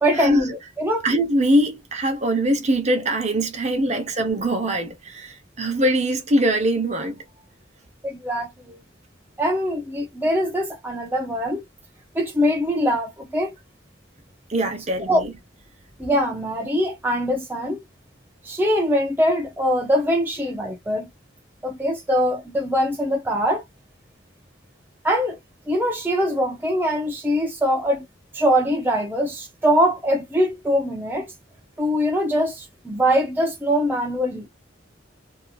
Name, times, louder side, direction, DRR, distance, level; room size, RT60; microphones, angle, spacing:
voice 1, 0.0-1.1 8.0-8.8 9.4-11.6 12.1-13.5 15.1-15.2 16.0-17.8 18.4-21.1 21.6-23.6 25.0-25.4 25.7-28.1 28.3-31.3 31.8-34.5, equal, 10° right, 0.5 m, -22 dB
voice 2, 1.0-7.2 14.5-15.3, right 1 dB, 35° right, 0.8 m, -22 dB
2.8 x 2.7 x 2.3 m
head